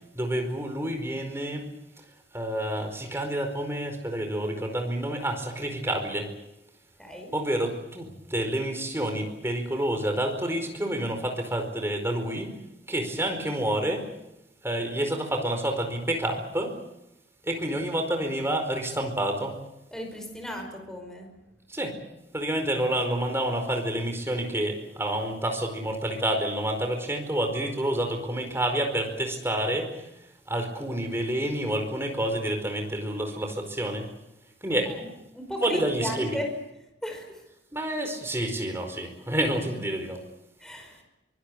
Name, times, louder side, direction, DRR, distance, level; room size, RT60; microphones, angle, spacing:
voice 1, 0.1-1.7 2.3-6.3 7.3-12.6 12.9-14.1 14.6-16.7 17.4-19.6 21.7-22.0 22.3-30.1 30.5-34.1 34.6-34.9 35.6-36.4 37.7-40.2, right 1 dB, 15° right, 4 dB, 4.8 m, -28 dB
voice 2, 7.0-7.3 19.9-21.3 34.9-35.1 35.3-36.5 37.0-37.4 40.6-41.0, equal, 5° left, 3 dB, 5.2 m, -35 dB
24.5 x 20.5 x 8.3 m, 0.90 s
head